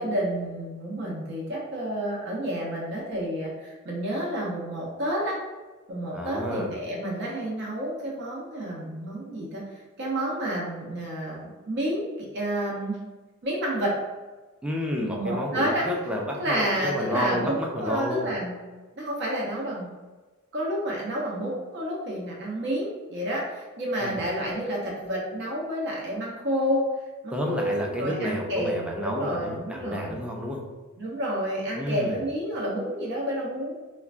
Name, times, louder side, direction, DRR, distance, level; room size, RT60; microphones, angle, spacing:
voice 1, 0.0-5.4 5.9-13.0 13.4-13.9 15.1-15.8 16.3-18.6 19.0-19.9 20.5-26.9 27.2-30.2 31.0-33.7, right 1 dB, 55° right, -4 dB, 0.7 m, -30 dB
voice 2, 6.1-6.7 14.6-18.3 24.0-24.2 27.3-30.6 31.7-32.2, left 1 dB, 5° right, -1 dB, 0.4 m, -30 dB
4.4 x 2.1 x 2.4 m, 1.3 s
head